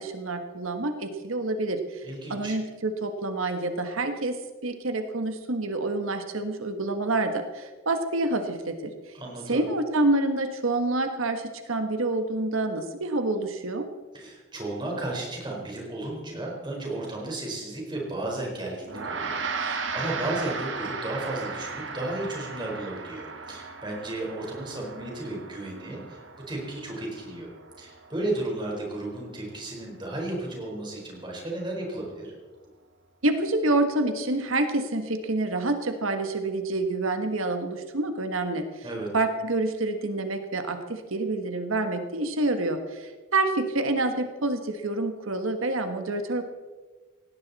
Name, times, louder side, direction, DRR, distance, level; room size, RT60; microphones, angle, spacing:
voice 1, 0.0-2.0 2.3-4.4 4.6-8.9 9.5-13.9 33.2-38.6 39.1-46.4, right 2 dB, 80° right, 7 dB, 1.5 m, -27 dB
voice 2, 2.0-2.6 9.1-9.6 14.1-27.5 27.8-32.3 38.8-39.1, right 2 dB, 20° right, -2 dB, 4.5 m, -34 dB
Gong, 18.9-28.5, right 4 dB, 65° right, 1.8 m, -36 dB
18.0 x 17.5 x 4.2 m, 1.4 s
head